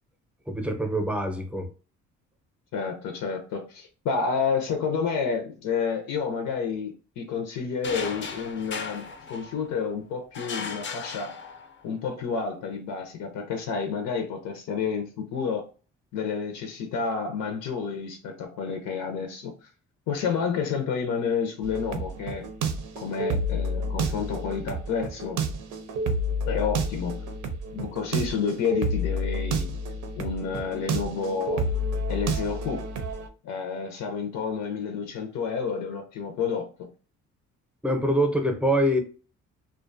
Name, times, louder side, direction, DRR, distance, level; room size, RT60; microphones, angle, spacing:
voice 1, 0.5-1.7 37.8-39.0, equal, 5° right, 0.6 m, -24 dB
voice 2, 2.7-11.3 11.8-15.6 16.1-19.7 20.1-22.5 23.0-25.4 26.5-27.2 27.7-29.7 30.2-31.6 32.1-32.8 33.4-36.9, left 6 dB, 85° left, 0.6 m, -30 dB
sound 1, 7.8-9.8 10.3-11.9, left 5 dB, 40° left, 0.4 m, -36 dB
sound 2, 21.6-33.3, right 1 dB, 80° right, 0.6 m, -30 dB
2.5 x 2.2 x 2.5 m
cardioid pair, 90°, 30 cm